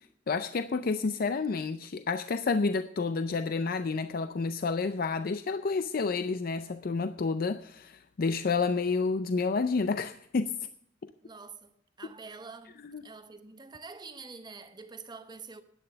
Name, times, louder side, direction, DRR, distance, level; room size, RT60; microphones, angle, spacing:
voice 1, 0.3-10.6 12.9-13.0, left 4 dB, 55° left, 0.5 m, -30 dB
voice 2, 11.2-15.6, right 4 dB, 25° right, 0.9 m, -46 dB
11.0 x 9.0 x 6.8 m
head